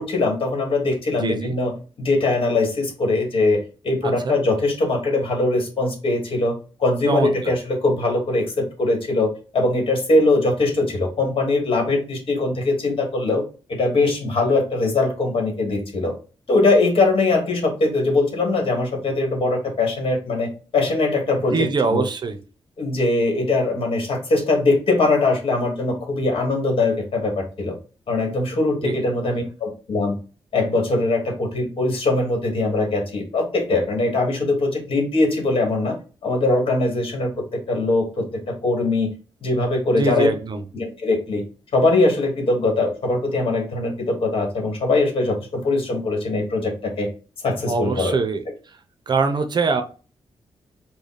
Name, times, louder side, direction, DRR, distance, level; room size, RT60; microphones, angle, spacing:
voice 1, 0.0-1.7 2.0-6.5 6.8-13.4 13.7-16.1 16.5-22.0 22.8-27.7 28.1-30.2 30.5-36.0 36.2-39.1 39.4-40.3 40.7-41.4 41.7-47.1 47.4-48.1, left 2 dB, 65° left, 2 dB, 1.7 m, -21 dB
voice 2, 1.2-1.5 4.0-4.4 7.1-7.5 21.5-22.4 28.8-29.1 40.0-40.6 47.7-48.4 49.1-49.8, right 4 dB, 45° right, 8 dB, 0.7 m, -23 dB
5.0 x 2.3 x 4.0 m, 0.36 s
wide cardioid pair, 120°, 10 cm